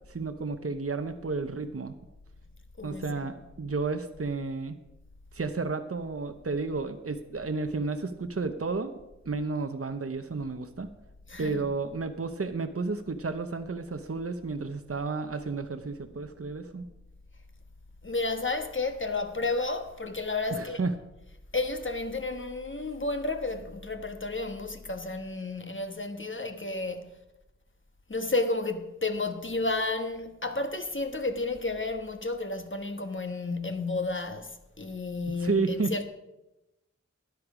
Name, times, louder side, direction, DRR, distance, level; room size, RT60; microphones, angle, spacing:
voice 1, 0.1-1.9 2.8-4.8 5.3-8.9 9.3-10.9 11.4-16.9 20.6-20.9 35.4-35.9, right 4 dB, 50° right, 0.9 m, -32 dB
voice 2, 2.8-3.5 11.3-11.8 18.0-20.8 21.5-27.1 28.1-36.1, left 3 dB, 45° left, 1.3 m, -32 dB
13.0 x 10.5 x 4.9 m
wide cardioid pair, 45°, 29 cm